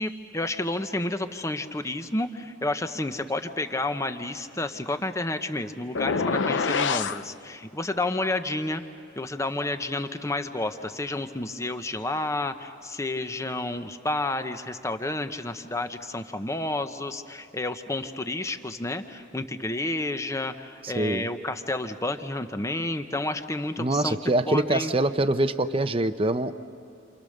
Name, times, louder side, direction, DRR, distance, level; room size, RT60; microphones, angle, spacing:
voice 1, 0.0-8.8 9.2-24.2 24.5-24.9, left 2 dB, 15° left, 8 dB, 0.9 m, -30 dB
sound 1, 6.0-7.2, left 5 dB, 70° left, 0.6 m, -25 dB
voice 2, 20.8-21.3 23.8-26.5, right 2 dB, 30° right, 11 dB, 0.7 m, -24 dB
29.5 x 27.5 x 6.6 m, 2.4 s
head